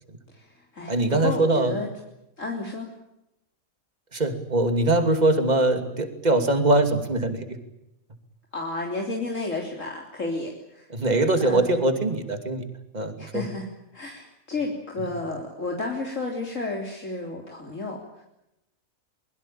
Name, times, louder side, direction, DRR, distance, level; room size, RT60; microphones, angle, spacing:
voice 1, 0.3-1.9 2.4-2.9 8.5-10.9 11.4-11.8 13.2-13.7 13.9-18.2, left 2 dB, 65° left, 0 dB, 3.9 m, -32 dB
voice 2, 0.9-1.7 4.1-7.6 10.9-12.6 12.9-13.4, right 2 dB, 30° right, 7 dB, 2.8 m, -22 dB
23.5 x 22.0 x 8.8 m, 0.85 s
omnidirectional pair, 1.4 m